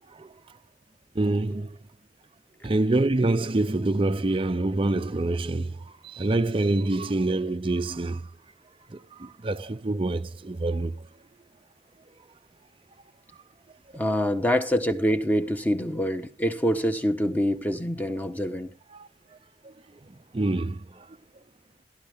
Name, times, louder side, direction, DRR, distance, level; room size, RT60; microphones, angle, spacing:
voice 1, 1.2-1.7 2.6-5.8 6.0-8.2 8.9-10.9 18.9-19.1 20.3-20.8, right 2 dB, 30° right, 0.5 m, -26 dB
voice 2, 13.9-18.7, equal, 10° left, 1.1 m, -25 dB
17.5 x 11.0 x 3.5 m
head